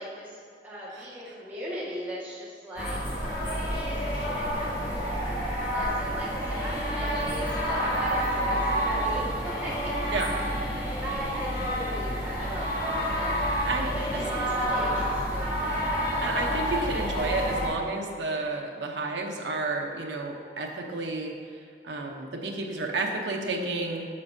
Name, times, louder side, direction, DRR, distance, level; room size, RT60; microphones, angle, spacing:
voice 1, 0.0-5.2 5.7-9.9 11.0-13.4 13.7-15.6, equal, 10° right, -8 dB, 1.8 m, -38 dB
sound 1, 2.8-17.7, equal, 55° left, 1.6 m, -29 dB
voice 2, 13.6-14.2 16.2-21.3 21.8-24.1, right 2 dB, 80° right, 1 dB, 0.9 m, -31 dB
8.5 x 6.9 x 2.8 m, 2.4 s
head